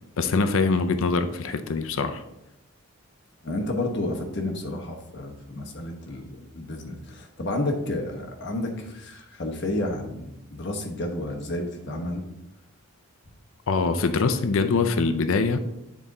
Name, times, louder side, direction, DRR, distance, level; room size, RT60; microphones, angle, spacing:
voice 1, 0.2-2.2 13.7-15.6, left 4 dB, 70° left, 9 dB, 0.5 m, -23 dB
voice 2, 3.4-12.2, left 1 dB, 50° left, 2 dB, 1.1 m, -31 dB
9.0 x 4.1 x 3.7 m, 0.89 s
head